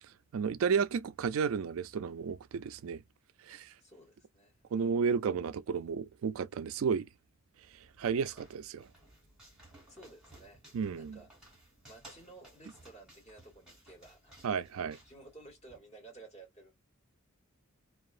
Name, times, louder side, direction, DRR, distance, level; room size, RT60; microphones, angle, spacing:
voice 1, 0.3-3.0 3.4-3.7 4.7-7.1 8.0-8.9 10.7-11.2 14.4-15.0, right 6 dB, 65° right, 0.3 m, -32 dB
voice 2, 3.8-5.0 8.7-8.9 9.9-10.6 10.9-11.3 11.9-14.4 15.0-16.7, right 2 dB, 30° left, 1.5 m, -55 dB
sound 1, 7.6-15.8, right 1 dB, 5° right, 1.5 m, -59 dB
2.7 x 2.3 x 2.4 m
head